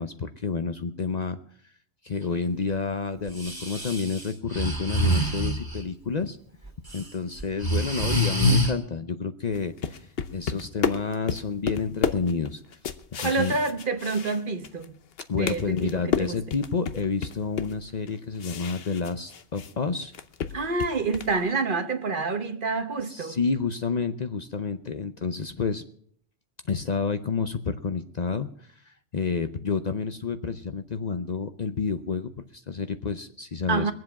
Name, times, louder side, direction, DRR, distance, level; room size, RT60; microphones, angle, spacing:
voice 1, 0.0-1.4 2.0-6.4 6.9-12.8 13.1-13.5 15.3-20.1 23.1-25.8 26.6-33.9, left 5 dB, 45° left, 0.7 m, -29 dB
Breathing, 3.3-5.8 6.7-7.0 7.4-8.7, equal, 20° right, 2.3 m, -25 dB
sound 1, 9.5-14.8 15.1-19.7 20.0-21.4, left 6 dB, 65° left, 1.0 m, -32 dB
voice 2, 13.2-15.0 15.3-16.4 20.5-23.4 33.7-33.9, right 4 dB, 50° right, 1.2 m, -28 dB
22.5 x 7.7 x 5.8 m
omnidirectional pair, 1.1 m